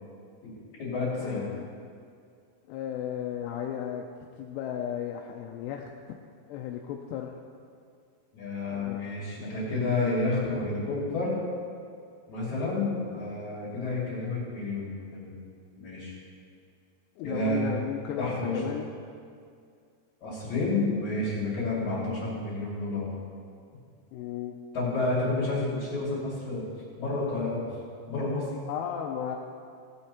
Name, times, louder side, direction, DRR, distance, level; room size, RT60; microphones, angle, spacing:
voice 1, 0.4-1.5 8.3-11.4 12.3-15.3 15.8-16.1 17.2-17.7 18.2-18.6 20.2-23.1 24.7-26.6 27.0-27.6 28.1-28.5, left 2 dB, 45° left, -10 dB, 3.8 m, -30 dB
voice 2, 1.2-1.9 2.7-4.1 4.4-5.9 6.5-7.4 8.7-9.0 9.4-9.6 17.2-18.9 24.1-24.6 28.7-29.4, left 9 dB, 85° left, 1 dB, 2.7 m, -35 dB
17.5 x 7.9 x 4.3 m, 2.3 s
omnidirectional pair, 5.1 m